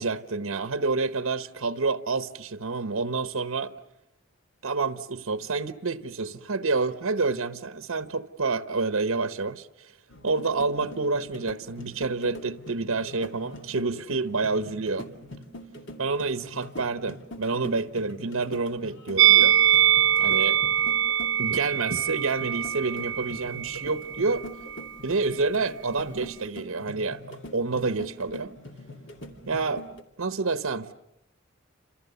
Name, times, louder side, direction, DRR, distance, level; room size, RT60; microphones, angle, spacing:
voice 1, 0.0-3.7 4.6-9.9 10.2-15.1 16.0-19.6 20.2-20.6 21.4-24.5 25.0-28.5 29.5-29.8 30.2-30.9, right 3 dB, 75° right, 1.0 m, -28 dB
sound 1, 10.1-30.0, left 1 dB, 60° left, 2.5 m, -43 dB
Musical instrument, 19.2-24.4 24.7-24.9, right 11 dB, 60° right, 1.1 m, -23 dB
30.0 x 27.0 x 6.9 m
head